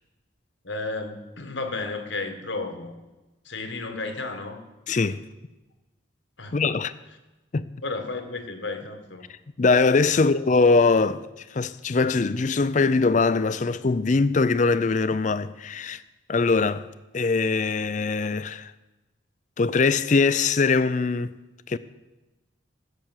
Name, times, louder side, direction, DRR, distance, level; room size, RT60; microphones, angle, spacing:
voice 1, 0.6-2.9 3.4-4.6 6.4-6.6 7.8-9.3 10.1-10.3, left 3 dB, 70° left, 1.5 m, -33 dB
voice 2, 4.9-5.2 6.5-6.9 7.5-7.7 9.6-11.3 11.5-16.0 16.3-16.9 17.1-18.7 19.6-21.4 21.7-21.8, left 4 dB, 40° left, 0.4 m, -22 dB
15.5 x 6.8 x 7.5 m
head